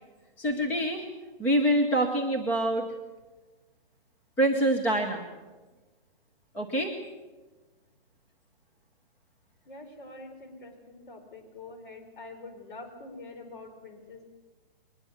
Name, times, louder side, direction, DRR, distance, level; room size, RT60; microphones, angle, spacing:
voice 1, 0.4-1.1 1.4-2.9 4.4-5.3 6.5-7.0, right 1 dB, 5° left, 1 dB, 0.7 m, -25 dB
voice 2, 9.7-14.2, left 2 dB, 60° left, 5 dB, 4.8 m, -45 dB
22.0 x 20.0 x 7.1 m, 1.2 s
hypercardioid pair, 170°, 29 cm